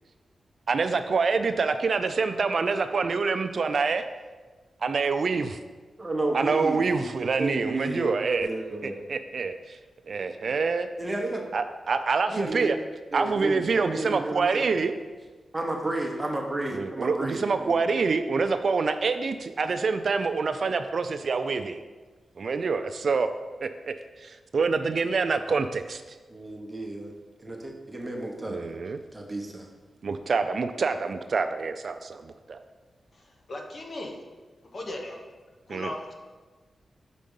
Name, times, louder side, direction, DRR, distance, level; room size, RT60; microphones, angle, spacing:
voice 1, 0.7-4.0 4.8-5.6 6.3-8.5 8.8-9.8 10.1-10.9 11.5-12.8 13.1-14.9 16.7-21.8 22.4-23.3 23.6-26.0 28.5-29.0 30.0-32.6 35.7-35.9, right 4 dB, 55° right, 9 dB, 0.3 m, -26 dB
voice 2, 6.0-8.1 8.4-9.0 10.4-10.5 11.0-11.5 12.3-12.8 13.1-14.9 15.5-17.8 26.3-27.1 27.4-28.8 29.1-29.7, right 2 dB, 20° right, 1 dB, 0.9 m, -32 dB
voice 3, 33.1-34.2 34.6-35.2 35.7-36.1, left 1 dB, 50° left, 1 dB, 0.9 m, -37 dB
5.1 x 4.5 x 5.4 m, 1.3 s
wide cardioid pair, 105°, 0 cm